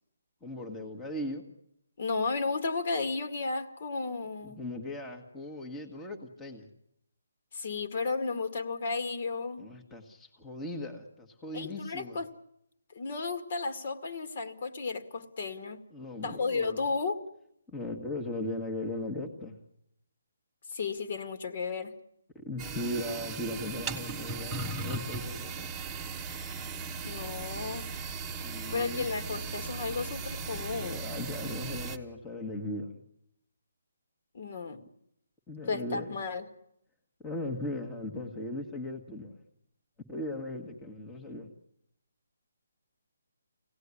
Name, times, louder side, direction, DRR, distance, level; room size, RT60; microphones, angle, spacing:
voice 1, 0.4-1.4 4.4-6.7 9.6-12.2 15.9-16.8 17.7-19.6 22.4-25.7 28.4-29.1 30.7-33.0 35.5-36.2 37.2-39.4 40.1-41.5, left 1 dB, 10° left, 2 dB, 1.7 m, -38 dB
voice 2, 2.0-4.6 7.5-9.6 11.5-12.3 12.9-15.8 16.2-17.2 20.7-21.9 27.0-27.8 28.7-31.0 34.3-34.8 35.7-36.4, left 4 dB, 45° left, 8 dB, 2.1 m, -33 dB
sound 1, 22.6-32.0, right 4 dB, 10° right, 1.3 m, -37 dB
25.0 x 18.0 x 9.8 m, 0.79 s
hypercardioid pair, 165°, 0 cm